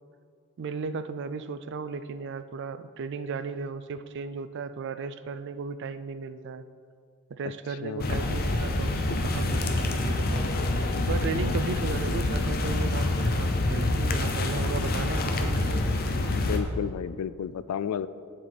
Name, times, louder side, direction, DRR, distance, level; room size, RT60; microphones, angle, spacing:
voice 1, 0.6-6.6 7.3-10.5 11.1-15.9, right 4 dB, 55° right, 12 dB, 0.4 m, -35 dB
voice 2, 7.8-8.1 10.8-11.0 11.3-11.7 16.3-18.1, left 8 dB, 80° left, 15 dB, 0.3 m, -33 dB
grass noises, 8.0-16.6, left 2 dB, 45° left, 0.7 m, -26 dB
8.4 x 7.4 x 4.0 m, 2.2 s
head